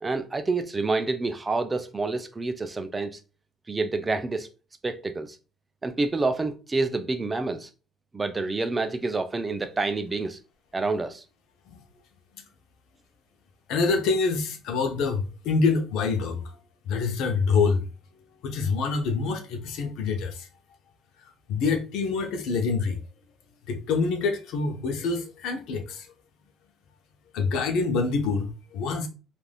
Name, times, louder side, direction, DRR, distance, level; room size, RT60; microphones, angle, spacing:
voice 1, 0.0-3.2 3.7-4.5 4.8-5.4 5.8-7.7 8.1-10.4 10.7-11.2, right 3 dB, 20° right, 0.4 m, -28 dB
voice 2, 13.7-16.6 16.9-17.8 18.4-20.5 21.5-23.0 23.7-26.1 27.3-29.1, left 4 dB, 80° left, 0.6 m, -26 dB
3.3 x 2.5 x 2.2 m
cardioid pair, 105°, 0 cm